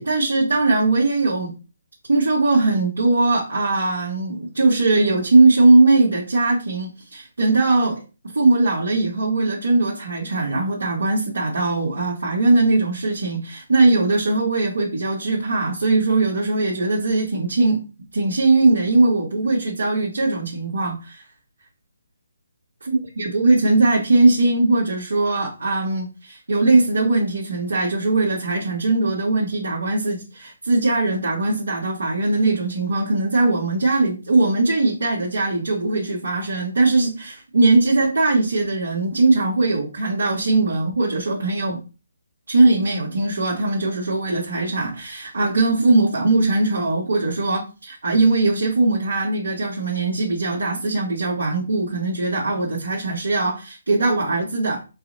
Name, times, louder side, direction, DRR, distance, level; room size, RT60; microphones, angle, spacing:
voice 1, 0.0-1.5 2.1-8.0 8.3-17.8 18.1-21.2 22.9-41.8 42.5-54.8, right 2 dB, 70° right, 1.4 m, -20 dB
4.7 x 2.9 x 2.6 m
figure-of-eight pair, 145°, 0 cm